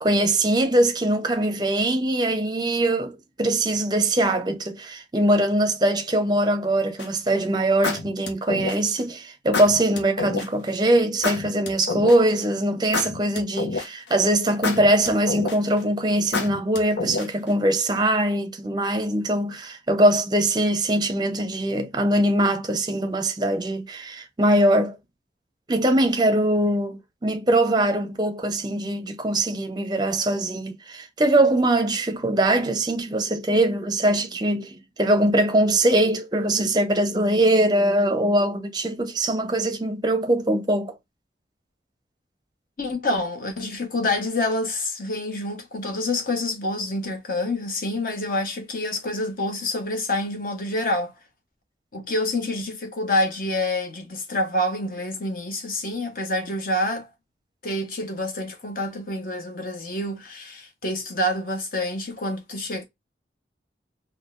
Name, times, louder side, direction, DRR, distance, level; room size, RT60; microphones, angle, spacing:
voice 1, 0.0-25.0 25.7-40.9, right 1 dB, 25° right, 0.6 m, -22 dB
sound 1, 7.0-7.3 7.8-9.0 9.5-10.5 11.2-12.4 12.9-14.1 14.6-15.8 16.3-17.5, left 3 dB, 80° left, 0.8 m, -28 dB
voice 2, 42.8-51.1 51.9-57.1 57.6-62.8, left 1 dB, 50° left, 1.0 m, -27 dB
3.7 x 2.3 x 2.4 m
head